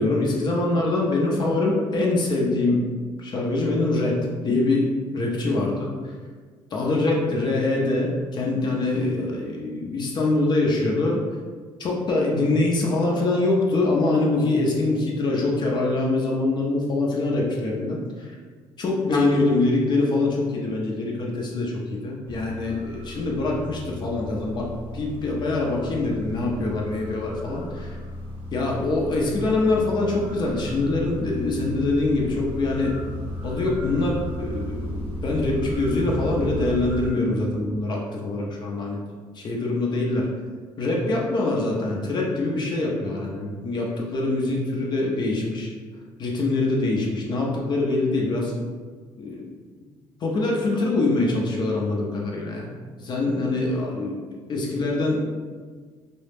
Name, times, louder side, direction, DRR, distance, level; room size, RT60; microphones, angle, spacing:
voice 1, 0.0-2.9 3.2-5.9 6.7-11.2 11.8-18.4 18.8-28.0 28.5-33.0 33.4-39.0 39.3-40.3 40.8-45.7 46.2-48.5 49.2-49.4 50.2-52.7 53.0-54.2 54.5-55.2, left 2 dB, 45° left, -2 dB, 0.5 m, -24 dB
sound 1, 22.2-37.1, equal, 15° right, 0.8 m, -35 dB
2.3 x 2.0 x 3.3 m, 1.5 s
cardioid pair, 100°, 11 cm